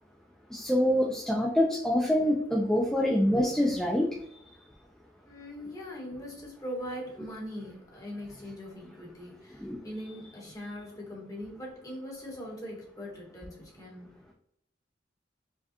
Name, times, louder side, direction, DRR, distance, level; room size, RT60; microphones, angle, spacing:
voice 1, 0.5-4.1 9.6-9.8, left 1 dB, 5° left, -1 dB, 0.4 m, -25 dB
voice 2, 5.2-14.1, equal, 20° left, -3 dB, 1.1 m, -41 dB
4.6 x 2.2 x 2.8 m, 0.70 s
head